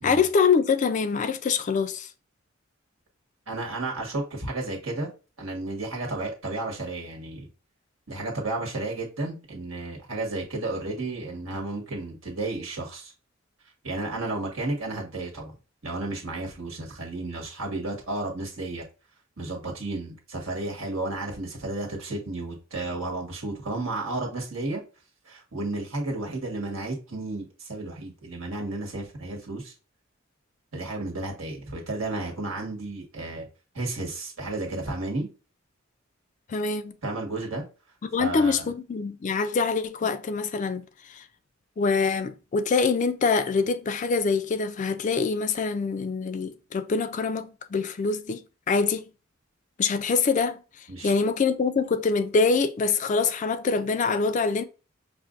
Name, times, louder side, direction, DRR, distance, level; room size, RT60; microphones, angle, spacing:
voice 1, 0.0-2.1 36.5-37.0 38.0-41.2 41.8-49.1 49.8-50.6 51.0-54.6, left 5 dB, 40° left, 0.3 m, -25 dB
voice 2, 3.5-5.1 5.4-7.5 8.1-13.1 13.8-15.5 15.8-18.8 19.4-24.8 25.2-29.7 30.7-33.5 33.7-35.3 37.0-37.6 38.2-38.7 50.9-51.1, right 2 dB, 80° right, 1.5 m, -32 dB
5.8 x 2.6 x 2.4 m
head